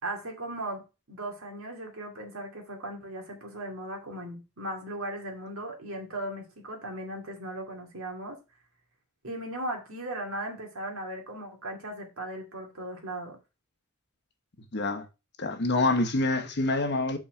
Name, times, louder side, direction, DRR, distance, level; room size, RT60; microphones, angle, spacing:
voice 1, 0.0-8.4 9.2-13.4, right 1 dB, 70° right, 2.4 m, -37 dB
voice 2, 14.7-15.1 15.4-17.2, left 2 dB, 50° left, 1.1 m, -26 dB
5.7 x 4.2 x 6.2 m
head